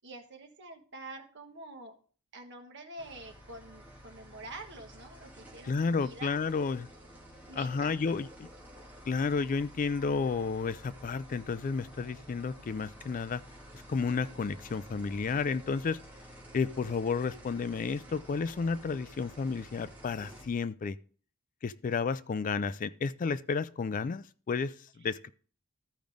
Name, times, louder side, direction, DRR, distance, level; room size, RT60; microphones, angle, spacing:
voice 1, 0.0-2.0 2.3-6.4 7.5-8.0 25.0-25.1, right 2 dB, 55° right, 1.4 m, -47 dB
sound 1, 3.0-20.5, equal, 10° right, 2.0 m, -51 dB
voice 2, 5.6-6.9 7.6-8.5 9.1-13.4 13.9-16.0 16.5-21.0 21.6-24.7 25.0-25.3, left 5 dB, 35° left, 0.3 m, -31 dB
14.0 x 5.1 x 3.5 m
head